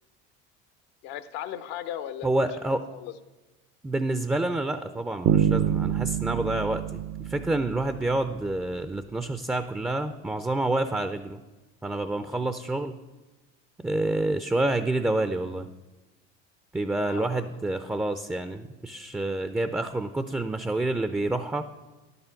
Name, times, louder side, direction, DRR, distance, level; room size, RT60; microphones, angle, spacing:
voice 1, 1.0-2.4 2.7-3.1 12.3-12.4 17.0-17.5, left 11 dB, 75° left, 12 dB, 0.7 m, -37 dB
voice 2, 2.2-2.8 3.8-7.0 7.3-11.4 11.8-12.9 13.8-15.7 16.7-21.6, right 2 dB, 5° right, 10 dB, 0.4 m, -28 dB
sound 1, 5.3-8.3, right 10 dB, 55° right, 0.5 m, -26 dB
10.5 x 6.8 x 5.8 m, 1.1 s
supercardioid pair, 85°, 33 cm